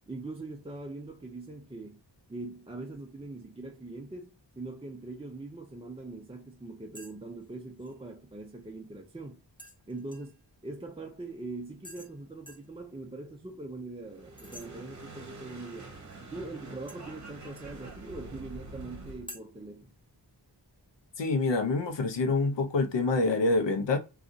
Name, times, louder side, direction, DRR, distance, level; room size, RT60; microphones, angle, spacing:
voice 1, 0.1-2.0 2.3-9.4 9.9-15.9 16.3-19.9, right 2 dB, 15° right, 0.4 m, -42 dB
sound 1, 6.9-7.2 7.4-7.9 9.6-10.4 11.8-12.1 12.5-12.7 14.4-14.7 16.9-17.8 19.3-19.4, equal, 10° left, 0.8 m, -48 dB
sound 2, 14.1-19.3, right 2 dB, 40° right, 1.0 m, -46 dB
voice 2, 21.2-24.0, left 3 dB, 75° left, 0.7 m, -26 dB
2.6 x 2.4 x 3.8 m
wide cardioid pair, 95°, 44 cm